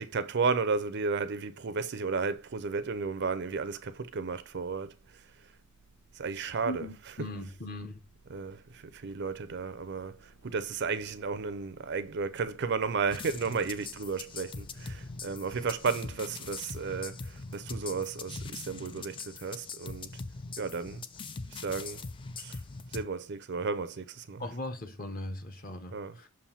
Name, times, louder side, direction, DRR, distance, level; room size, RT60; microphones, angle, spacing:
voice 1, 0.0-4.9 6.2-7.3 8.3-10.2 10.4-20.1 20.6-21.0 21.5-22.0 22.4-22.6 22.9-24.5 25.9-26.2, right 4 dB, 50° right, 0.5 m, -33 dB
sound 1, 2.3-15.8, right 2 dB, 65° left, 2.3 m, -61 dB
voice 2, 6.6-8.0 24.4-26.3, left 1 dB, 40° left, 1.0 m, -39 dB
sound 2, 13.1-23.0, left 4 dB, 20° left, 0.3 m, -42 dB
7.0 x 2.6 x 5.6 m
head